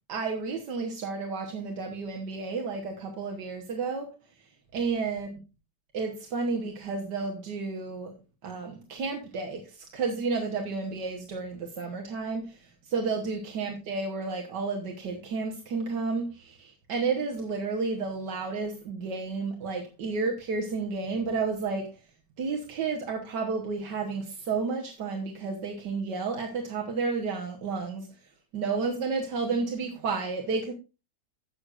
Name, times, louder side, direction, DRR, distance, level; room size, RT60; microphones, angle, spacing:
voice 1, 0.1-4.1 4.7-5.3 5.9-8.1 8.4-22.0 22.4-28.1 28.5-30.7, right 4 dB, 80° right, 1 dB, 1.8 m, -31 dB
16.5 x 6.4 x 2.5 m, 0.29 s
omnidirectional pair, 1.8 m